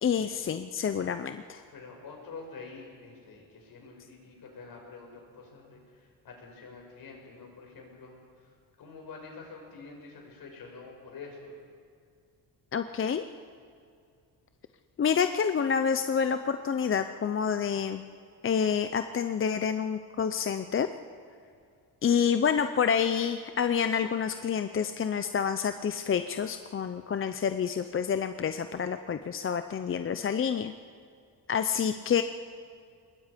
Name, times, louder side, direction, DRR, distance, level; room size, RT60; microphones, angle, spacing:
voice 1, 0.0-1.6 12.7-13.2 15.0-18.0 18.4-20.9 22.0-30.7 31.5-32.2, left 7 dB, 30° left, 9 dB, 0.6 m, -28 dB
voice 2, 1.7-8.5 8.8-11.6, left 4 dB, 60° left, 0 dB, 6.2 m, -47 dB
25.5 x 21.0 x 5.2 m, 2.3 s
cardioid pair, 140°, 40 cm